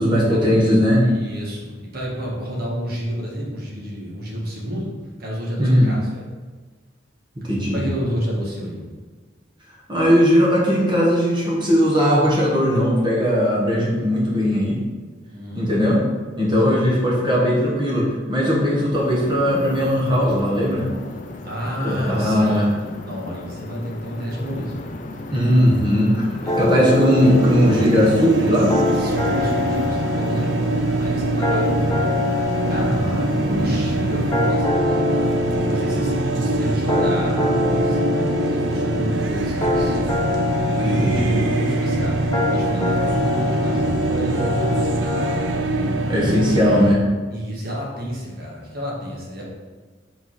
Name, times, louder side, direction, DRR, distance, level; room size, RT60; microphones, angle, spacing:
voice 1, 0.0-1.1 5.6-5.9 7.4-7.9 9.9-14.8 15.5-16.0 16.4-20.9 21.8-22.7 25.3-26.3 26.6-28.7 32.8-33.7 40.8-41.3 43.1-43.2 46.1-47.1, equal, 25° right, -5 dB, 1.2 m, -18 dB
voice 2, 1.0-4.9 5.2-6.2 7.7-8.8 15.3-15.7 16.6-16.8 21.4-22.6 23.0-24.7 26.4-26.9 28.9-31.9 32.4-33.0 33.5-40.0 40.7-42.2 42.5-45.2 46.1-46.7 47.3-49.4, equal, 55° right, -4 dB, 1.6 m, -30 dB
sound 1, 18.9-34.5, left 2 dB, 45° left, 0.5 m, -36 dB
sound 2, 26.5-45.4, left 2 dB, 20° left, 0.9 m, -25 dB
sound 3, 27.2-47.0, right 2 dB, 75° right, 0.5 m, -23 dB
5.0 x 4.1 x 4.7 m, 1.4 s
head